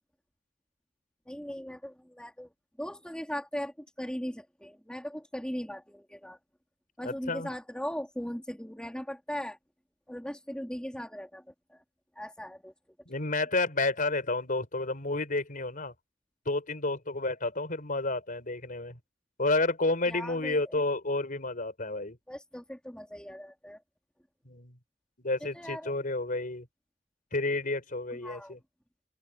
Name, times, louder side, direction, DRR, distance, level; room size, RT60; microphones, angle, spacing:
voice 1, 1.3-2.5 2.8-6.4 7.0-9.6 10.1-11.8 12.1-12.7 20.1-20.7 22.3-23.8 25.5-25.9 28.1-28.6, equal, 5° left, 2.6 m, -39 dB
voice 2, 7.0-7.5 13.1-15.9 16.5-19.0 19.4-22.2 24.5-24.8 25.2-26.7 27.3-28.6, left 2 dB, 45° left, 5.3 m, -30 dB
head